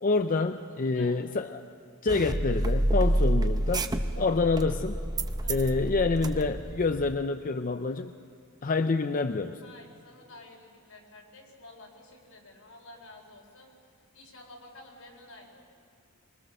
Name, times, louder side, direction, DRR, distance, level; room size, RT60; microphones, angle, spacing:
voice 1, 0.0-1.6 2.0-3.9 4.2-5.0 5.5-8.1 8.6-9.6, left 3 dB, 40° left, 8 dB, 0.5 m, -27 dB
voice 2, 0.8-1.2 4.1-4.4 5.4-5.9 9.6-13.7 14.1-15.6, left 2 dB, 80° left, 0 dB, 4.5 m, -51 dB
sound 1, 2.1-7.1, right 1 dB, 20° right, 0.7 m, -28 dB
24.0 x 23.0 x 6.6 m, 2.3 s
head